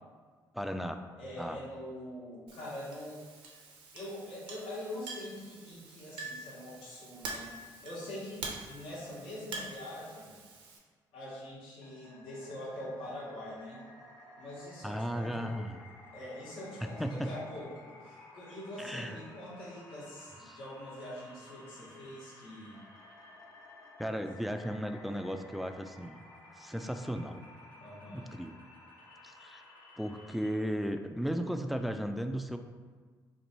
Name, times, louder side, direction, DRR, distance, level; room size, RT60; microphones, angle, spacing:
voice 1, 0.5-1.0 1.4-1.6 14.8-15.8 17.0-17.3 18.8-19.2 20.5-20.6 24.0-26.2 26.6-27.4 28.1-28.7 29.2-29.6 30.0-32.6, equal, ahead, 6 dB, 0.3 m, -35 dB
voice 2, 1.2-3.2 3.9-7.5 7.8-10.3 11.1-13.8 14.4-15.7 16.1-22.8 27.8-28.3, left 1 dB, 75° left, -7 dB, 1.2 m, -44 dB
Chink clink, 2.5-10.8, right 3 dB, 75° right, 0.6 m, -46 dB
sound 1, 11.8-30.5, left 2 dB, 55° left, 1.1 m, -54 dB
3.0 x 2.6 x 4.1 m, 1.5 s
supercardioid pair, 55°, 9 cm